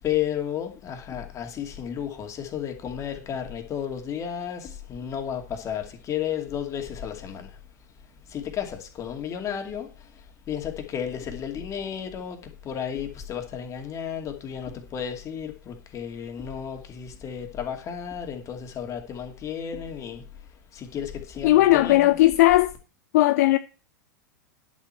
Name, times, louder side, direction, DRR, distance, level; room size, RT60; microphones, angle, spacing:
voice 1, 0.0-7.6 8.3-20.2 20.7-22.1, left 9 dB, 30° left, 2.6 m, -33 dB
voice 2, 21.4-22.7 23.1-23.6, left 16 dB, 60° left, 0.5 m, -17 dB
11.0 x 7.4 x 4.5 m
figure-of-eight pair, 95°, 10 cm